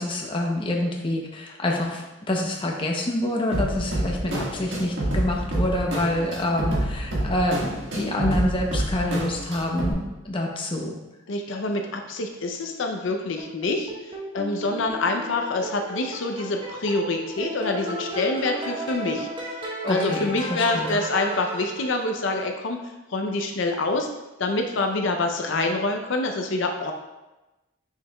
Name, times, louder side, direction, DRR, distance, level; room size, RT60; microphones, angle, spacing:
voice 1, 0.0-11.0 19.8-21.0, left 1 dB, 25° left, 0 dB, 0.7 m, -27 dB
sound 1, 3.5-9.9, right 1 dB, 65° right, 1.6 m, -28 dB
voice 2, 11.3-13.9 14.3-19.3 19.9-22.8 23.1-24.1 24.4-26.9, left 2 dB, 70° left, 4 dB, 0.5 m, -26 dB
sound 2, 13.4-22.3, right 1 dB, 25° right, 0.9 m, -35 dB
6.5 x 6.4 x 2.3 m, 1.1 s
head